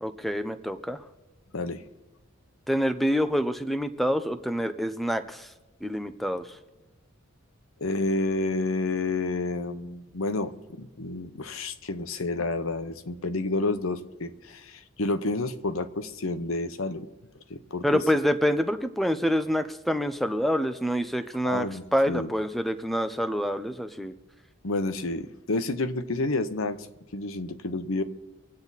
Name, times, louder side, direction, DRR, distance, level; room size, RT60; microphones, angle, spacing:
voice 1, 0.0-1.0 2.7-5.5 5.8-6.4 17.8-24.1, equal, ahead, 8 dB, 0.6 m, -26 dB
voice 2, 7.8-17.1 17.5-17.8 21.4-22.3 24.6-26.9 27.1-28.0, left 2 dB, 75° left, 9 dB, 1.0 m, -30 dB
25.5 x 8.7 x 4.1 m, 1.1 s
head